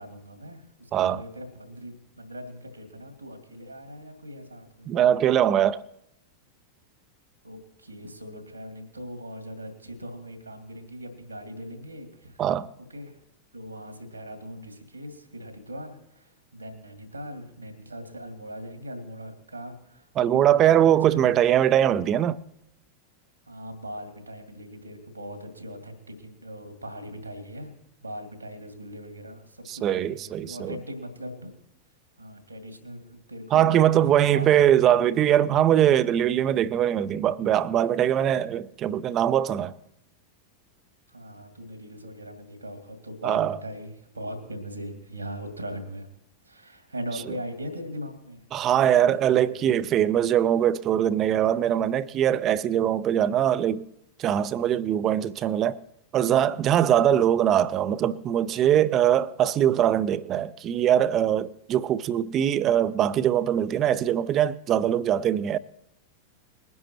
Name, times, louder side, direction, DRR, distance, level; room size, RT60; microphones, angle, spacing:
voice 1, 0.0-4.9 7.4-12.4 12.9-13.2 13.5-20.8 21.1-21.3 23.5-27.7 28.0-31.5 32.2-34.5 41.1-46.1 46.5-49.6, equal, 85° right, 2.4 m, -40 dB
voice 2, 4.9-5.8 12.4-12.7 20.2-22.4 29.7-30.7 33.5-39.7 43.2-43.6 48.5-53.8 54.2-55.8 56.1-65.6, right 10 dB, 30° right, 0.5 m, -22 dB
21.0 x 11.0 x 3.1 m
figure-of-eight pair, 90°, 0 cm